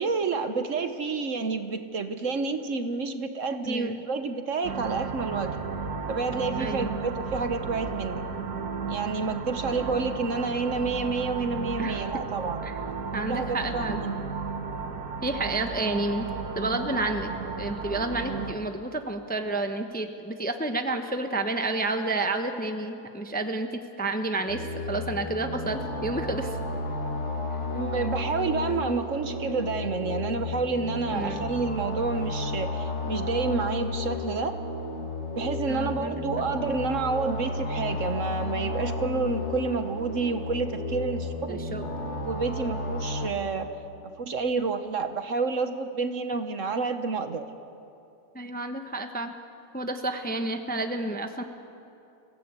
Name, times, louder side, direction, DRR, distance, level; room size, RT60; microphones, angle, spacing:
voice 1, 0.0-5.6 6.1-8.2 8.9-12.6 13.3-14.2 27.7-34.6 35.4-41.6 42.2-43.7 44.3-47.4, right 4 dB, 55° right, 8 dB, 1.3 m, -29 dB
voice 2, 3.6-4.1 6.6-7.0 9.8-9.9 11.8-12.1 12.6-12.7 13.1-14.0 15.2-16.3 16.5-17.3 17.6-23.7 24.0-26.6 31.1-31.5 35.7-36.2 41.5-41.8 48.3-49.4 49.7-51.4, right 2 dB, 5° left, 6 dB, 0.8 m, -30 dB
sound 1, 4.6-18.5, right 5 dB, 70° right, 1.8 m, -34 dB
sound 2, 24.5-43.3, left 2 dB, 45° left, 2.4 m, -33 dB
26.5 x 17.0 x 8.2 m, 2.7 s
omnidirectional pair, 1.7 m